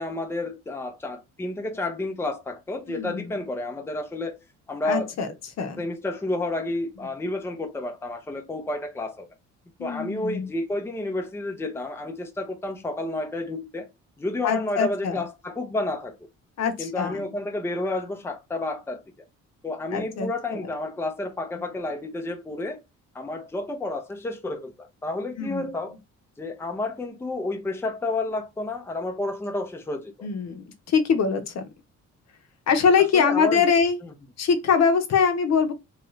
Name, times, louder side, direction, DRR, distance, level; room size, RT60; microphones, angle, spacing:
voice 1, 0.0-4.4 4.7-5.1 5.8-9.3 9.8-13.9 14.2-16.2 16.8-19.0 19.6-22.8 23.1-26.0 26.4-30.1 33.1-33.7, left 2 dB, 10° left, 0.6 m, -30 dB
voice 2, 2.9-3.3 4.8-5.3 5.6-5.8 9.8-10.5 14.4-15.2 16.6-17.3 19.9-20.7 25.4-25.6 30.2-31.7 32.7-34.0 34.4-35.7, left 6 dB, 60° left, 0.8 m, -23 dB
3.0 x 2.4 x 3.1 m
cardioid pair, 90°, 30 cm